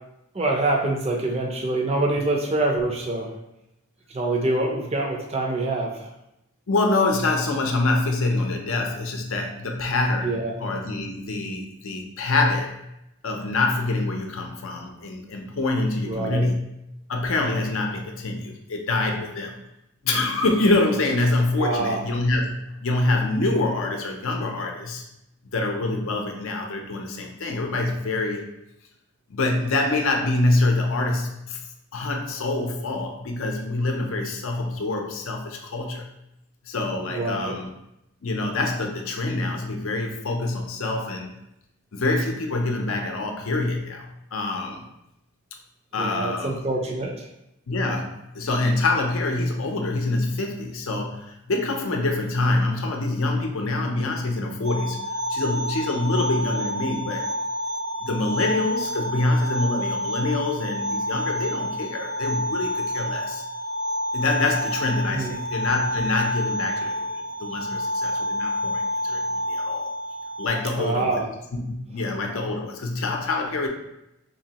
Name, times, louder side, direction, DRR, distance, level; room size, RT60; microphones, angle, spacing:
voice 1, 0.3-3.3 4.1-6.1 10.2-10.6 16.0-16.5 21.6-22.0 37.1-37.6 46.0-47.3 65.1-65.4 70.8-71.3, right 2 dB, 30° right, 1 dB, 0.5 m, -25 dB
voice 2, 6.7-12.7 13.2-16.6 17.1-19.5 20.0-25.0 25.5-28.4 29.3-31.6 31.9-36.0 36.6-37.7 38.2-41.3 41.9-44.9 45.9-46.6 47.7-55.0 55.3-57.3 58.0-63.4 64.1-67.1 67.4-69.2 69.5-69.9 70.4-71.2 71.5-73.7, left 2 dB, 65° left, 2 dB, 0.6 m, -25 dB
sound 1, 54.6-70.5, left 1 dB, 80° right, 0.9 m, -29 dB
4.0 x 2.9 x 2.8 m, 0.86 s
head